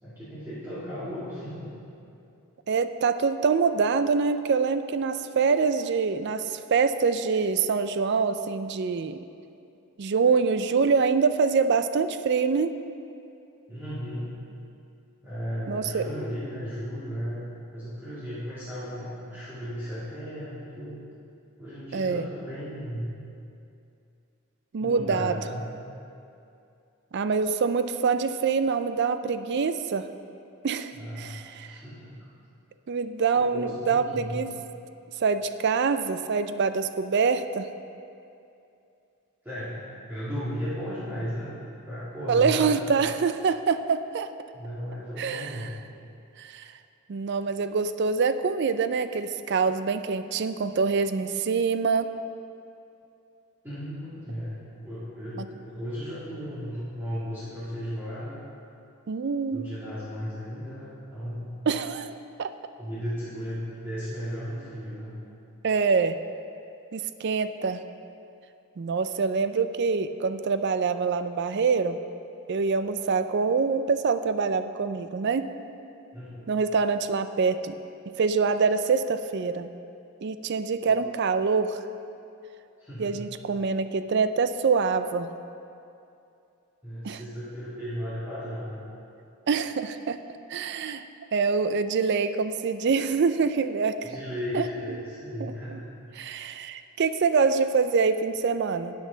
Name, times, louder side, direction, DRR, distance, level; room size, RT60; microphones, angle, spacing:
voice 1, 0.0-1.7 13.7-14.3 15.2-17.4 17.7-21.0 21.6-23.1 24.8-25.7 30.9-31.4 31.6-32.1 33.3-34.4 39.4-41.5 41.9-42.8 44.5-45.7 53.6-58.4 59.5-61.5 62.8-65.1 76.1-76.4 80.8-81.0 82.8-83.2 86.8-88.8 94.0-95.8, equal, 10° right, -13 dB, 1.9 m, -35 dB
voice 2, 2.7-9.2 10.0-12.7 15.7-16.1 21.9-22.3 24.7-25.4 27.1-30.1 30.6-31.8 32.9-34.5 35.2-37.7 42.3-44.3 45.2-45.7 46.4-46.7 47.1-52.1 59.1-59.7 61.7-62.5 65.6-66.2 66.9-67.8 68.8-72.0 72.5-75.5 76.5-77.8 78.1-79.7 80.2-81.8 83.0-85.3 87.0-87.2 89.5-90.2 90.5-91.0 91.3-94.2 94.5-94.6 95.4-95.8 96.2-98.9, right 5 dB, 50° right, 11 dB, 0.4 m, -25 dB
12.5 x 8.3 x 3.9 m, 2.6 s
head